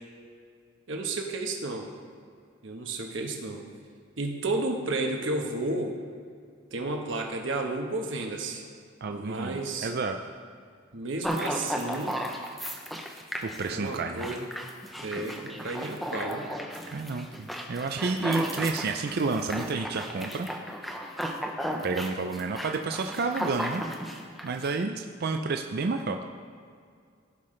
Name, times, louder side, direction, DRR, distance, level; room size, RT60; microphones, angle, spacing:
voice 1, 0.9-1.9 2.6-3.6 4.2-5.9 6.7-8.7 9.1-9.9 10.9-12.2 13.7-14.5 15.0-16.5, right 2 dB, 65° right, 2 dB, 1.1 m, -32 dB
voice 2, 9.0-10.2 13.4-14.2 16.9-20.5 21.8-23.8 24.4-26.2, right 4 dB, 50° right, 4 dB, 0.4 m, -30 dB
sound 1, 11.2-24.7, equal, ahead, 0.6 m, -34 dB
15.5 x 5.7 x 3.2 m, 2.2 s
head